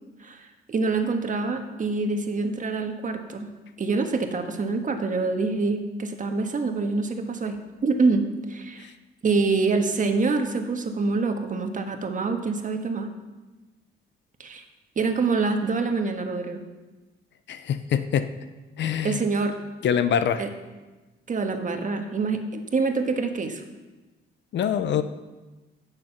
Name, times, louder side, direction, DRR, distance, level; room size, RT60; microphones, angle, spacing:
voice 1, 0.2-3.5 3.8-8.9 9.2-13.1 14.4-14.6 14.9-16.6 19.0-19.6 20.4-20.5 21.3-23.6, right 4 dB, 40° right, 5 dB, 1.6 m, -26 dB
voice 2, 17.5-18.3 18.8-19.2 19.8-20.4 24.5-25.0, left 8 dB, 65° left, 11 dB, 0.7 m, -24 dB
16.0 x 6.7 x 6.0 m, 1.2 s
cardioid pair, 90°, 20 cm